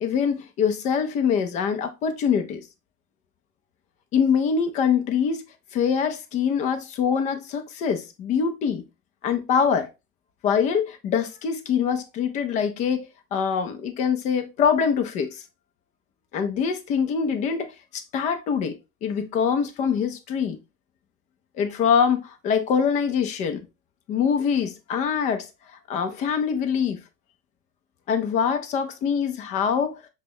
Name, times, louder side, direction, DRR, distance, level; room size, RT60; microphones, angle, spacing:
voice 1, 0.0-2.6 4.1-5.4 5.7-8.8 9.2-9.9 10.4-15.4 16.3-18.8 19.0-20.6 21.6-23.7 24.1-25.5 25.9-27.0 28.1-30.0, left 7 dB, 20° left, 0.3 m, -24 dB
5.6 x 2.1 x 3.5 m
hypercardioid pair, 90°, 44 cm